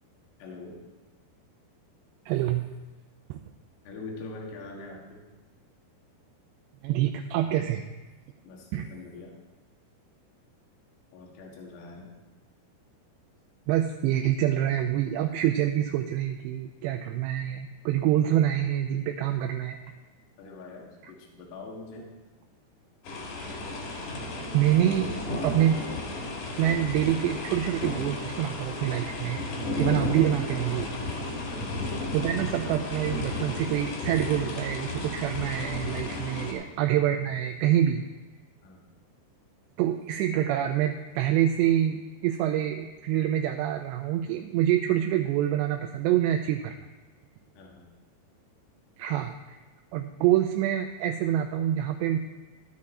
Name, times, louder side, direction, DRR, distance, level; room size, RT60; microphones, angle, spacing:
voice 1, 0.4-0.8 3.9-5.3 8.4-9.4 11.1-12.2 20.4-22.1 31.5-31.8 36.4-36.6 38.6-39.0 47.6-47.9, left 3 dB, 75° left, -1 dB, 3.7 m, -44 dB
voice 2, 2.3-2.7 3.3-3.4 6.8-7.8 8.7-8.9 13.7-19.9 24.5-25.1 25.4-25.8 26.6-29.4 29.8-30.9 32.1-38.0 39.8-46.8 49.0-49.6 49.9-52.2, right 11 dB, 85° right, 4 dB, 2.8 m, -26 dB
sound 1, 23.0-36.5, left 2 dB, 55° left, 3.1 m, -33 dB
12.0 x 9.4 x 4.3 m, 1.2 s
omnidirectional pair, 4.9 m